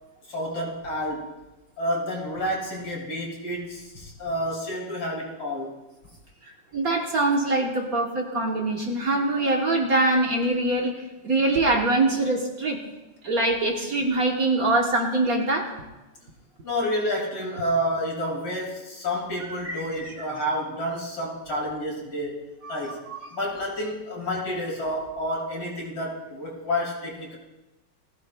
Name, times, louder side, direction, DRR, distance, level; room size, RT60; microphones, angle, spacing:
voice 1, 0.3-1.3 1.8-5.7 16.6-22.4 22.7-23.0 23.3-27.4, equal, 60° left, -4 dB, 3.9 m, -29 dB
voice 2, 6.4-10.9 11.2-12.8 13.2-15.7 19.6-20.4 22.6-22.8 23.1-23.2, right 2 dB, 50° right, 1 dB, 1.4 m, -24 dB
19.5 x 16.0 x 2.2 m, 1.1 s
omnidirectional pair, 2.3 m